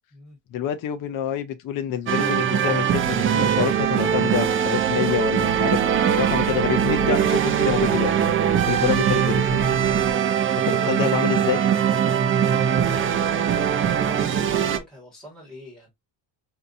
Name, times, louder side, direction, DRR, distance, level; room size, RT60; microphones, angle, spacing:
voice 1, 0.5-8.1 8.7-9.6 10.6-11.6, left 9 dB, 50° left, 0.5 m, -27 dB
sound 1, 2.1-14.8, right 8 dB, 30° right, 0.4 m, -21 dB
sound 2, 2.4-10.1, right 2 dB, 50° right, 1.0 m, -36 dB
voice 2, 12.0-15.9, equal, ahead, 1.6 m, -45 dB
5.6 x 2.7 x 2.5 m
cardioid pair, 170°, 45 cm